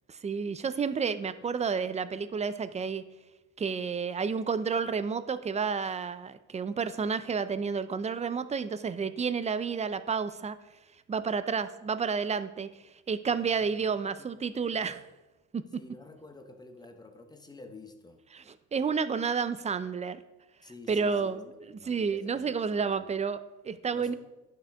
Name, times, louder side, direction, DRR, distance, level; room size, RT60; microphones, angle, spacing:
voice 1, 0.1-3.0 3.6-10.6 11.1-12.7 13.1-15.0 15.5-15.6 18.3-20.2 20.9-21.4 21.9-24.1, right 5 dB, 20° right, 13 dB, 0.3 m, -30 dB
voice 2, 13.4-13.9 14.7-15.0 15.7-18.2 20.6-23.1 23.9-24.1, left 3 dB, 10° left, 6 dB, 0.8 m, -50 dB
10.5 x 5.7 x 3.4 m, 1.0 s
cardioid pair, 125°, 33 cm